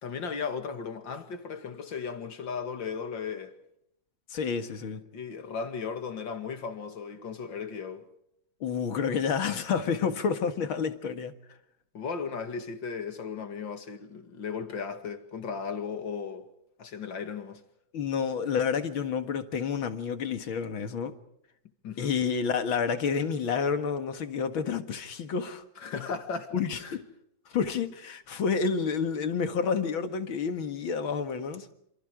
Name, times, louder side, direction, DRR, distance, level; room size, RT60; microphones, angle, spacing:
voice 1, 0.0-3.6 5.1-8.0 11.9-16.5 16.8-17.6 21.8-22.1 25.8-27.0, left 5 dB, 65° left, 2.9 m, -36 dB
voice 2, 4.3-5.0 8.6-11.3 17.9-21.2 22.0-25.6 26.5-27.0 27.5-31.7, left 6 dB, 85° left, 2.6 m, -29 dB
28.0 x 27.5 x 5.0 m
omnidirectional pair, 2.2 m